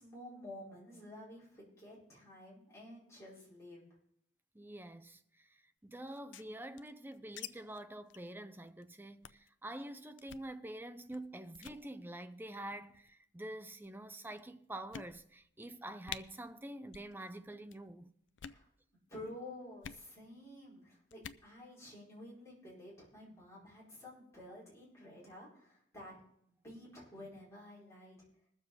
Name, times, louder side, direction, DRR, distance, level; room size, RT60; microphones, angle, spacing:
voice 1, 0.0-3.9 18.4-26.1 26.5-28.2, left 1 dB, 15° left, 5.2 m, -51 dB
voice 2, 4.5-18.2 24.5-24.6, right 1 dB, 10° right, 0.5 m, -47 dB
sound 1, 6.1-7.5 7.7-7.8 8.1-8.3 8.6-8.8 9.2-9.5 10.2-10.5 11.1-11.3 11.5-11.8 12.7-13.1 13.8-13.9 14.4-14.5 14.9-15.5 15.7-15.8 16.0-16.2 16.9-17.1 17.4-17.8 18.3-18.6 19.8-20.0 21.1-21.4, left 9 dB, 80° left, 0.5 m, -48 dB
21.5 x 7.2 x 4.0 m
head